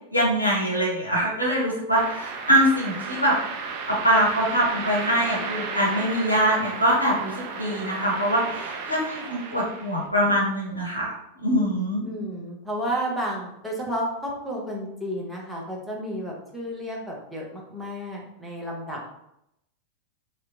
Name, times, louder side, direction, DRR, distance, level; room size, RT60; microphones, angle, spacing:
voice 1, 0.1-3.4 3.9-12.0, equal, 90° left, -4 dB, 0.8 m, -23 dB
sound 1, 2.0-10.1, right 4 dB, 45° right, 0.4 m, -34 dB
voice 2, 12.1-19.1, equal, 5° right, -4 dB, 0.8 m, -32 dB
2.8 x 2.2 x 2.6 m, 0.80 s
figure-of-eight pair, 90°, 0 cm